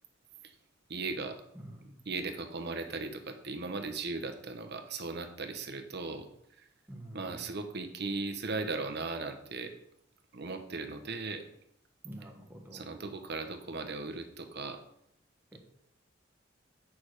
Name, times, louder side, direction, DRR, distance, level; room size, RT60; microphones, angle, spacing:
voice 1, 0.9-1.4 2.1-6.3 6.6-6.7 7.1-9.7 10.3-11.5 12.7-14.8, right 3 dB, 60° right, 6 dB, 1.1 m, -37 dB
voice 2, 1.5-2.0 6.9-7.4 12.0-13.0 15.5-15.6, right 1 dB, 10° right, 1 dB, 1.4 m, -47 dB
8.9 x 6.1 x 4.9 m, 0.75 s
head